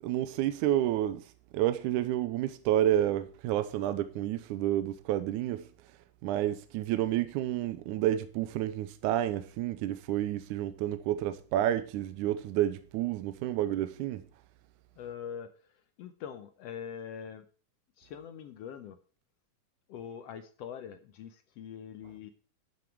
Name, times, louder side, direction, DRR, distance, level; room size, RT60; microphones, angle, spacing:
voice 1, 0.0-1.2 1.5-5.7 6.2-14.2, right 12 dB, 80° right, 2.0 m, -30 dB
voice 2, 15.0-15.7 16.0-17.5 18.0-19.0 19.9-22.3, left 8 dB, 75° left, 1.5 m, -43 dB
12.0 x 7.4 x 4.6 m
omnidirectional pair, 3.6 m